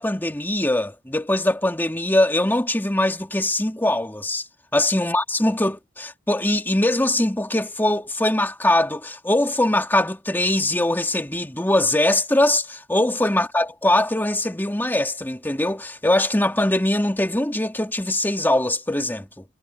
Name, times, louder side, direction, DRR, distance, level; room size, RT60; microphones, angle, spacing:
voice 1, 0.0-4.4 4.7-19.4, left 1 dB, 10° left, 2.2 m, -22 dB
head